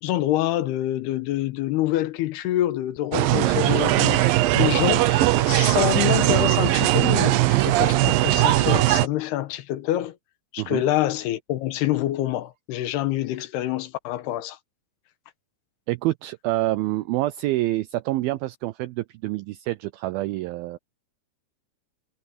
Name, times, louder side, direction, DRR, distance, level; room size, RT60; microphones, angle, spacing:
voice 1, 0.0-10.2 10.5-14.6, left 14 dB, 80° left, 2.8 m, -26 dB
sound 1, 3.1-9.1, right 16 dB, 75° right, 2.2 m, -19 dB
voice 2, 15.9-20.8, right 17 dB, 90° right, 2.1 m, -27 dB
omnidirectional pair, 4.9 m